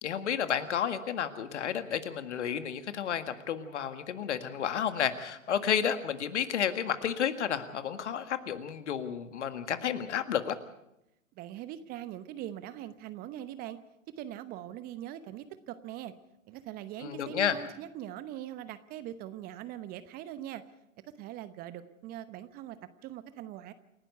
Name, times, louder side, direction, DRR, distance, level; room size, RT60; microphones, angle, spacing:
voice 1, 0.0-10.6 17.0-17.6, left 8 dB, 60° left, 10 dB, 1.9 m, -31 dB
voice 2, 11.4-13.8 14.2-16.1 16.5-20.6 21.2-23.7, right 12 dB, 25° right, 14 dB, 0.9 m, -42 dB
28.5 x 12.0 x 8.1 m, 0.85 s
figure-of-eight pair, 115°, 39 cm